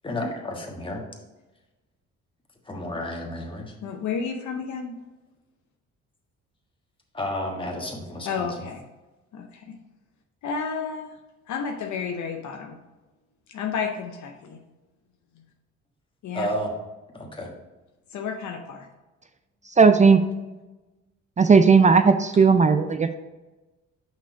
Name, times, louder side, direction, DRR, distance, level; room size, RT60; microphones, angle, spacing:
voice 1, 0.0-1.0 2.7-3.7 7.1-8.5 16.3-16.7 17.1-17.5, left 1 dB, 15° left, 0 dB, 1.4 m, -31 dB
voice 2, 3.8-4.9 8.2-8.8 9.3-9.8 10.4-11.1 11.5-12.8 13.5-14.6 16.2-16.5 18.1-18.9, left 6 dB, 70° left, 4 dB, 0.7 m, -31 dB
voice 3, 19.8-20.2 21.4-23.2, right 5 dB, 25° right, 9 dB, 0.4 m, -16 dB
5.7 x 4.6 x 5.0 m, 1.1 s
cardioid pair, 90°, 30 cm